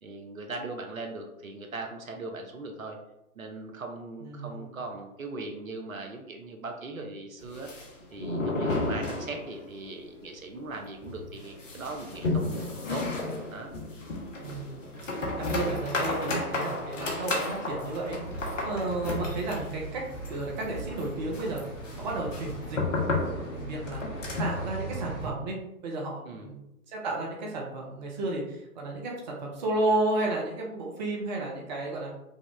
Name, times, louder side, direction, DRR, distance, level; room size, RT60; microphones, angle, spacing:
voice 1, 0.0-3.0 3.4-7.7 8.1-13.1 13.5-13.7 26.3-26.5, right 3 dB, 60° right, 3 dB, 0.9 m, -39 dB
voice 2, 4.2-4.8 14.4-14.9 15.4-18.2 18.6-21.6 22.0-22.8 23.5-24.0 24.4-25.6 25.8-32.1, right 2 dB, 30° right, -1 dB, 0.8 m, -32 dB
sound 1, 7.4-9.8 10.0-10.1 10.5-10.6 11.0-24.7, left 2 dB, 55° left, 1.2 m, -33 dB
sound 2, 18.0-25.3, right 2 dB, 15° left, 1.2 m, -40 dB
5.4 x 2.4 x 3.3 m, 0.86 s
figure-of-eight pair, 130°, 45 cm